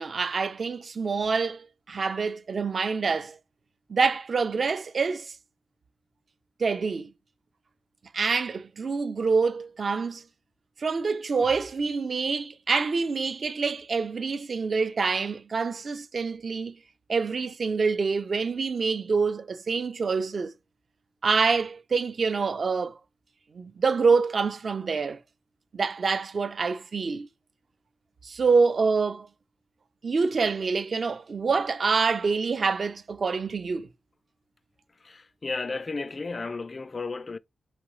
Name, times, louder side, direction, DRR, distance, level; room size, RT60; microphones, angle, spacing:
voice 1, 0.0-3.4 3.9-5.3 6.6-7.1 8.1-10.2 10.8-16.7 17.1-20.5 21.2-23.0 23.5-25.2 25.7-27.3 28.2-29.3 30.0-33.9, right 4 dB, 45° right, 0.5 m, -26 dB
voice 2, 35.0-37.4, left 3 dB, 35° left, 0.3 m, -33 dB
5.0 x 3.0 x 3.1 m
wide cardioid pair, 105°, 0 cm